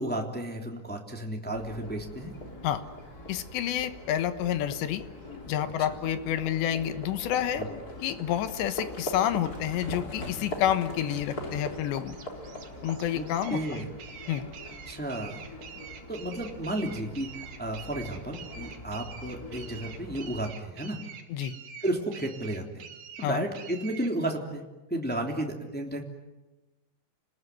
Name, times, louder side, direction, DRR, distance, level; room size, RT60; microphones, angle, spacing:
voice 1, 0.0-2.3 7.6-7.7 13.1-13.9 14.9-15.5 16.1-21.0 21.8-22.8 23.2-24.6 24.9-26.0, right 1 dB, 5° left, 1 dB, 2.2 m, -33 dB
Livestock farm animals working animals, 1.5-20.5, left 1 dB, 20° left, 3.6 m, -42 dB
voice 2, 3.3-5.0 5.5-7.6 8.0-12.2 12.8-13.8 14.3-14.5 21.3-21.6 23.2-23.4, left 11 dB, 80° left, 11 dB, 3.5 m, -29 dB
sound 1, 11.7-24.1, right 7 dB, 55° right, 3.5 m, -46 dB
29.5 x 20.0 x 9.6 m, 1.1 s
omnidirectional pair, 5.1 m